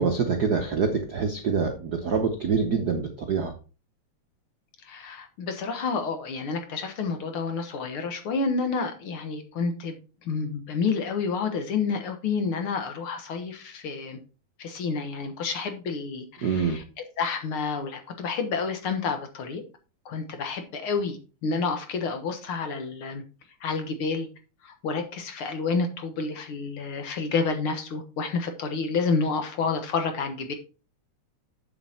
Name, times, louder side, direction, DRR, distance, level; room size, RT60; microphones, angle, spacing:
voice 1, 0.0-3.5 16.4-16.8, right 5 dB, 85° right, 4 dB, 0.8 m, -25 dB
voice 2, 4.8-10.0 10.3-14.2 14.6-16.8 17.2-19.6 20.1-23.2 23.6-24.3 24.6-30.5, left 4 dB, 55° left, 7 dB, 1.9 m, -29 dB
7.9 x 7.2 x 4.3 m, 0.33 s
omnidirectional pair, 3.3 m